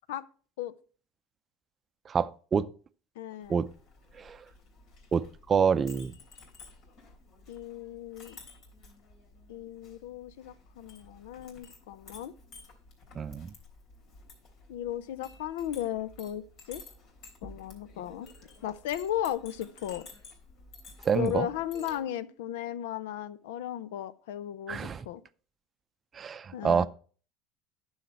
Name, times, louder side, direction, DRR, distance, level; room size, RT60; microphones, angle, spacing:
voice 1, 2.1-2.7 3.5-3.7 4.2-4.4 5.1-6.1 13.1-13.5 21.0-21.5 24.7-25.0 26.1-26.9, right 6 dB, 30° right, 0.5 m, -27 dB
voice 2, 3.2-3.6 7.5-8.4 9.5-12.3 14.7-16.8 17.4-18.3 18.6-20.1 21.1-25.2 26.5-26.9, left 11 dB, 85° left, 0.5 m, -35 dB
Chink clink, 3.4-22.0, left 3 dB, 60° left, 3.6 m, -53 dB
10.0 x 6.5 x 4.4 m
supercardioid pair, 105°, 0 cm